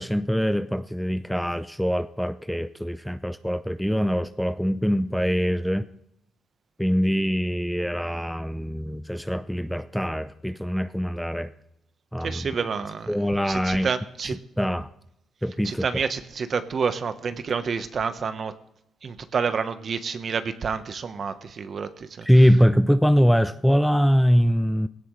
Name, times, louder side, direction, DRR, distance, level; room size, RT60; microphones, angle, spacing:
voice 1, 0.0-5.9 6.8-11.5 12.1-12.5 13.1-13.9 14.2-14.9 15.4-15.8 22.2-24.9, equal, ahead, 12 dB, 0.5 m, -23 dB
voice 2, 12.2-14.4 15.6-18.5 19.0-22.3, right 5 dB, 50° right, 10 dB, 1.1 m, -29 dB
19.0 x 17.0 x 3.3 m, 0.79 s
cardioid pair, 90°, 0 cm